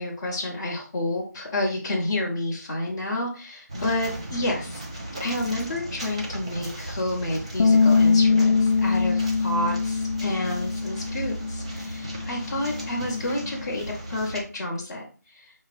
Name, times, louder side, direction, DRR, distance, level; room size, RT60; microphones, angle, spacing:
voice 1, 0.0-4.8 5.2-15.5, left 1 dB, 10° left, -7 dB, 0.9 m, -30 dB
sound 1, 3.7-14.4, right 1 dB, 20° right, 0.5 m, -36 dB
Bass guitar, 7.6-13.8, left 4 dB, 85° left, 0.4 m, -23 dB
5.5 x 2.9 x 3.2 m, 0.38 s
figure-of-eight pair, 175°, 10 cm